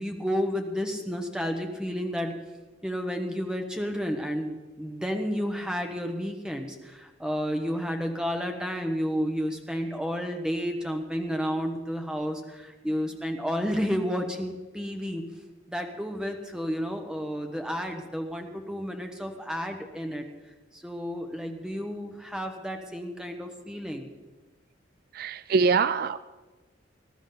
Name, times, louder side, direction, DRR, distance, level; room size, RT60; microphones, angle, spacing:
voice 1, 0.0-2.3 2.8-15.2 15.7-20.3 20.7-24.1, equal, 5° right, 4 dB, 1.2 m, -31 dB
voice 2, 25.1-26.2, right 5 dB, 50° right, 14 dB, 0.3 m, -24 dB
20.0 x 12.0 x 4.0 m, 1.2 s
head